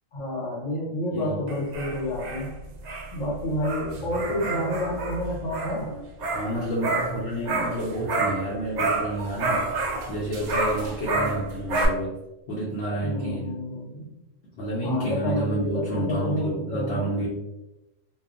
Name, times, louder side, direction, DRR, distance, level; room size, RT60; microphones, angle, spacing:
voice 1, 0.1-2.5 3.1-5.9 6.9-7.0 11.1-11.4 12.9-14.1 14.8-17.1, left 1 dB, 90° left, -8 dB, 1.4 m, -29 dB
voice 2, 1.1-1.5 6.2-9.7 10.1-12.2 12.5-13.5 14.5-17.3, right 1 dB, 65° left, -7 dB, 0.9 m, -29 dB
sound 1, 1.5-8.5 8.7-11.9, right 3 dB, 90° right, 0.3 m, -29 dB
2.9 x 2.1 x 2.4 m, 0.96 s
omnidirectional pair, 1.3 m